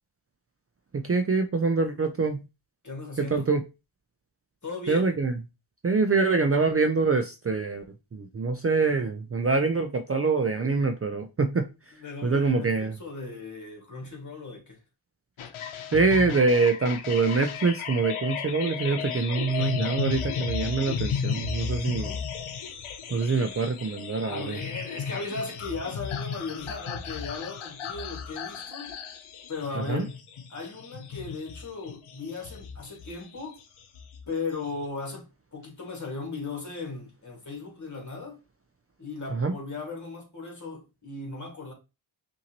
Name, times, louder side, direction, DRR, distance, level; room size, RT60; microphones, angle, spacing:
voice 1, 0.9-2.4 3.2-3.6 4.9-5.4 5.8-7.8 8.1-11.7 12.2-12.9 15.9-22.1 23.1-24.6 29.9-30.0 39.3-39.5, right 4 dB, 30° right, 0.5 m, -25 dB
voice 2, 2.8-3.5 4.6-5.1 11.9-14.8 19.4-19.8 21.8-22.2 24.2-29.0 29.5-30.2 30.5-33.6 34.3-38.4 39.0-41.7, left 3 dB, 35° left, 2.0 m, -37 dB
sound 1, 15.4-34.8, left 7 dB, 80° left, 0.8 m, -35 dB
5.7 x 2.7 x 2.9 m
cardioid pair, 65°, 49 cm